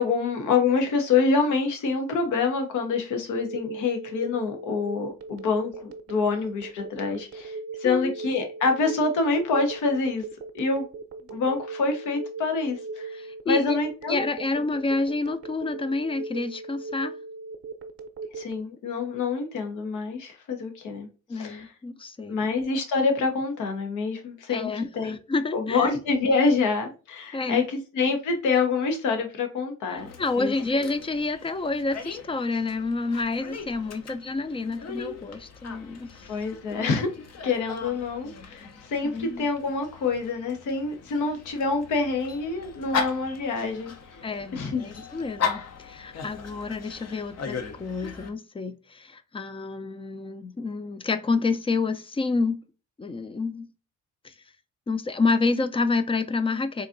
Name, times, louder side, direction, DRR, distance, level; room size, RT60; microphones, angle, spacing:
voice 1, 0.0-10.2 10.5-10.8 11.3-14.2 18.3-21.1 21.3-21.7 22.3-25.2 25.5-30.1 30.4-30.5 36.2-37.1 37.4-43.9 44.5-44.8, left 4 dB, 80° left, 4 dB, 1.0 m, -26 dB
Telephone, 3.3-18.6, right 3 dB, 50° right, 0.6 m, -38 dB
voice 2, 13.2-13.8 14.1-17.2 21.3-22.4 24.5-25.9 27.3-27.7 29.9-36.3 39.0-39.5 44.2-52.6 53.0-53.7 54.2-54.3 54.9-56.9, left 3 dB, 20° left, 11 dB, 0.4 m, -29 dB
Dog, 30.0-48.3, left 6 dB, 55° left, 0.7 m, -38 dB
3.9 x 2.6 x 2.5 m, 0.34 s
cardioid pair, 90°, 30 cm